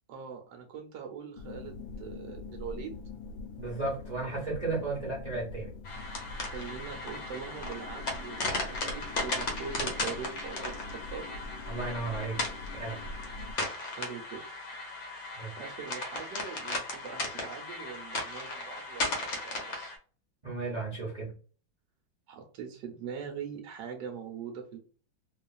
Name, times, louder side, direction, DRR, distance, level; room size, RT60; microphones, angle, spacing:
voice 1, 0.1-3.0 6.4-11.2 13.9-14.4 15.6-19.9 22.3-24.8, right 6 dB, 70° right, 3 dB, 1.1 m, -42 dB
sound 1, 1.4-13.5, left 2 dB, 80° left, 1.3 m, -43 dB
voice 2, 3.6-5.7 11.7-12.4 12.8-13.0 15.4-15.5 20.4-21.3, right 3 dB, 55° right, -5 dB, 0.4 m, -34 dB
sound 2, 5.8-20.0, left 2 dB, 55° left, 0.8 m, -36 dB
3.0 x 2.4 x 2.3 m, 0.39 s
omnidirectional pair, 2.1 m